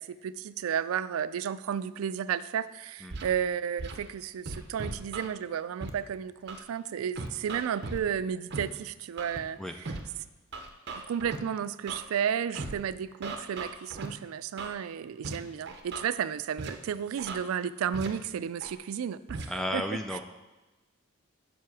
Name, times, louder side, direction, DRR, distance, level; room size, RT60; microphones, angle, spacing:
voice 1, 0.0-9.6 11.1-19.8, right 8 dB, 90° right, 16 dB, 0.3 m, -33 dB
Scratching (performance technique), 3.1-3.3 3.8-4.0 4.5-5.3 5.8-5.9 6.5-6.6 7.2-8.0 8.5-8.6 9.2-9.4 9.9-10.0 10.5-11.4 11.9-12.0 12.6-12.7 13.2-14.1 14.6-14.7 15.2-15.4 15.7-16.0 16.6-16.7 17.2-17.4 17.9-18.1 18.6-18.8 19.3-19.5, right 3 dB, 55° right, 0.7 m, -37 dB
voice 2, 19.5-20.2, equal, ahead, 5 dB, 0.3 m, -33 dB
7.6 x 5.6 x 4.7 m, 1.1 s
head